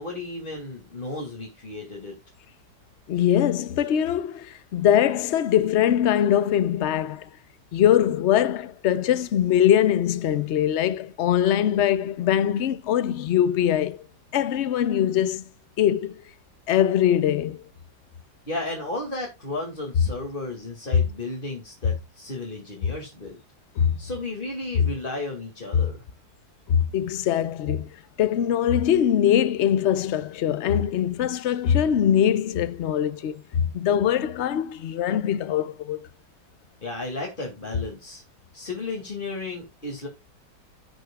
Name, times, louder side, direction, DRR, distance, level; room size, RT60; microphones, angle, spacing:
voice 1, 0.0-2.1 18.5-23.4 24.0-26.0 36.8-38.2 38.5-40.1, left 2 dB, 30° left, 2.4 m, -34 dB
voice 2, 3.1-7.3 7.7-14.0 14.3-15.4 15.8-16.2 16.7-17.6 23.8-24.0 25.7-25.9 26.7-27.9 28.2-36.1, left 10 dB, 55° left, 0.8 m, -22 dB
16.0 x 6.3 x 2.3 m
omnidirectional pair, 1.9 m